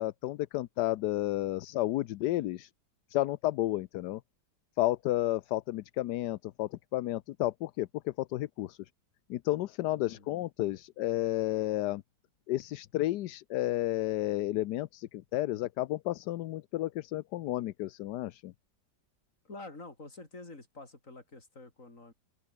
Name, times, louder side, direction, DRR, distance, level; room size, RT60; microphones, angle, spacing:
voice 1, 0.0-2.7 3.1-4.2 4.8-8.9 9.3-12.0 12.5-18.5, left 15 dB, 75° left, 1.2 m, -32 dB
voice 2, 9.9-10.3 19.4-22.1, left 2 dB, 45° left, 5.0 m, -48 dB
open air
omnidirectional pair, 1.9 m